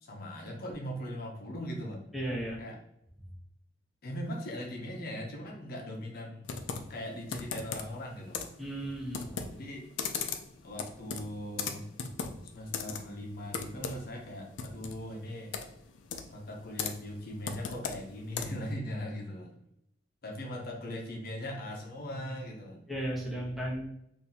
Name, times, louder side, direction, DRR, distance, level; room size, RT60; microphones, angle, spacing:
voice 1, 0.0-2.0 2.6-2.8 4.0-6.5 6.9-8.5 9.5-9.8 10.6-11.8 12.5-15.6 16.3-19.5 20.2-22.8, equal, 55° left, 0 dB, 0.7 m, -39 dB
voice 2, 2.1-2.6 8.6-9.5 22.9-23.9, right 1 dB, ahead, -3 dB, 0.8 m, -35 dB
Computer keyboard, 6.5-18.7, left 6 dB, 85° left, 0.4 m, -39 dB
2.8 x 2.6 x 3.9 m, 0.77 s
head